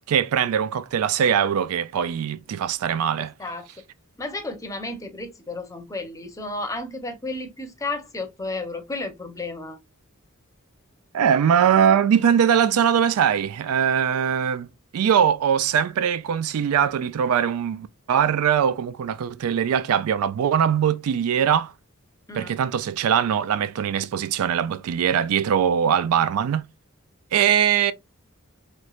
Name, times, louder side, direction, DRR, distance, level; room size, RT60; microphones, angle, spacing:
voice 1, 0.1-3.3 11.1-14.7 14.9-21.7 22.3-26.7 27.3-27.9, right 8 dB, 85° right, 0.3 m, -21 dB
voice 2, 4.2-9.8 22.3-22.5, left 2 dB, 15° left, 0.6 m, -32 dB
3.2 x 3.1 x 2.3 m
head